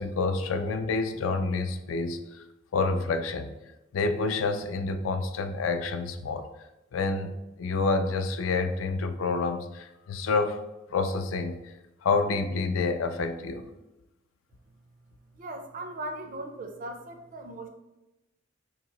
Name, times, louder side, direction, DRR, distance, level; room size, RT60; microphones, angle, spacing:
voice 1, 0.0-2.4 2.7-3.5 3.9-6.5 6.9-10.6 10.9-11.6 12.0-13.6, left 3 dB, 75° left, 7 dB, 0.4 m, -28 dB
voice 2, 15.4-17.7, right 1 dB, 45° right, 5 dB, 0.4 m, -38 dB
2.9 x 2.7 x 3.9 m, 0.96 s
head